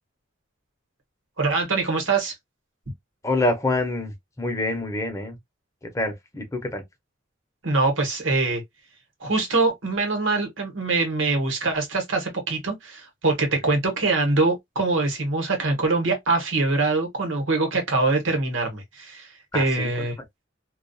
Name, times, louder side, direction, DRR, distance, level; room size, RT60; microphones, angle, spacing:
voice 1, 1.4-2.3 7.6-8.6 9.2-19.3 19.5-20.1, right 3 dB, 80° right, 1.0 m, -23 dB
voice 2, 3.2-5.4 5.8-6.8 19.5-20.1, left 2 dB, 15° left, 0.6 m, -26 dB
2.3 x 2.2 x 2.5 m
head